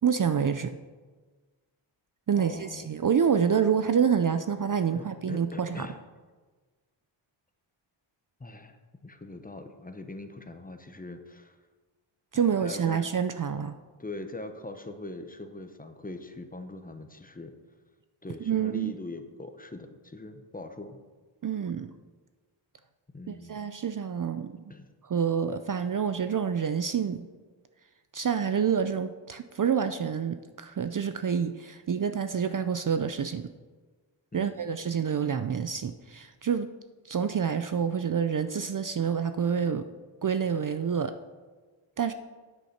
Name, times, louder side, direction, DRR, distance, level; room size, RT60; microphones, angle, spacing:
voice 1, 0.0-0.8 2.3-5.9 12.3-13.7 18.4-18.9 21.4-21.9 23.3-24.6 25.0-27.3 28.1-33.4 34.3-36.7 37.0-39.8 40.2-41.1 42.0-42.1, right 7 dB, 45° right, 9 dB, 0.5 m, -27 dB
voice 2, 2.3-2.9 4.9-6.0 8.4-11.6 12.3-13.0 14.0-17.5 18.2-21.0 23.1-23.6 24.7-24.9 34.3-34.6, left 2 dB, 20° left, 7 dB, 0.8 m, -42 dB
9.4 x 8.3 x 5.8 m, 1.3 s
wide cardioid pair, 150°, 48 cm